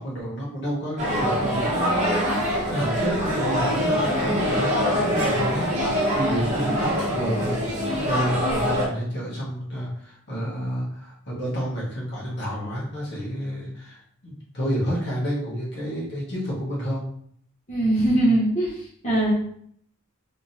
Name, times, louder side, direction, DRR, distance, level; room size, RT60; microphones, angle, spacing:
voice 1, 0.0-17.1, equal, 55° left, -6 dB, 1.4 m, -30 dB
sound 1, 1.0-8.9, equal, 30° right, 1.1 m, -24 dB
voice 2, 17.7-19.3, right 1 dB, 30° left, -9 dB, 1.1 m, -21 dB
3.6 x 3.0 x 2.8 m, 0.65 s
head